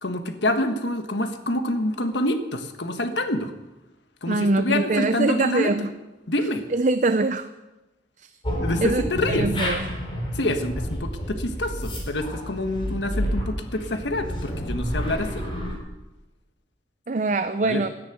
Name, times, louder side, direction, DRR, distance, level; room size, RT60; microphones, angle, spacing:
voice 1, 0.0-3.5 4.2-5.7 6.3-6.6 8.6-9.5 10.3-15.5 17.6-17.8, left 1 dB, 80° left, 7 dB, 1.5 m, -27 dB
voice 2, 4.3-5.9 6.7-7.5 8.8-9.8 17.1-17.9, right 2 dB, 45° right, 10 dB, 0.5 m, -23 dB
sound 1, 8.4-15.7, equal, 30° left, 4.2 m, -29 dB
13.5 x 10.0 x 9.2 m, 1.0 s
head